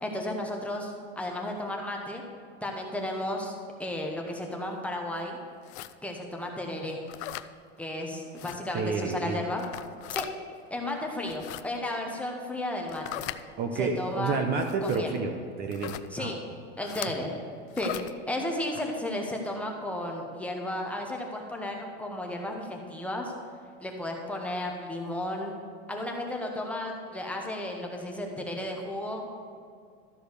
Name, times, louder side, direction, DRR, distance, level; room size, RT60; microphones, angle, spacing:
voice 1, 0.0-2.2 2.6-3.5 3.8-5.4 6.0-7.0 7.8-9.6 10.1-10.3 10.7-13.2 13.7-14.4 14.8-15.1 16.1-16.4 16.8-17.4 17.8-17.9 18.3-23.3 23.8-25.5 25.9-29.3, left 1 dB, 5° left, 0 dB, 0.9 m, -33 dB
sound 1, 5.6-5.9 7.1-7.5 8.4-8.6 9.5-10.3 11.2-11.6 12.9-13.4 14.6-15.0 15.7-16.1 16.8-17.1 17.7-18.1, left 15 dB, 85° left, 0.6 m, -38 dB
voice 2, 8.7-9.4 13.6-16.4 16.8-16.9, right 4 dB, 30° right, 5 dB, 0.7 m, -30 dB
13.0 x 5.1 x 6.6 m, 2.3 s
supercardioid pair, 160°, 33 cm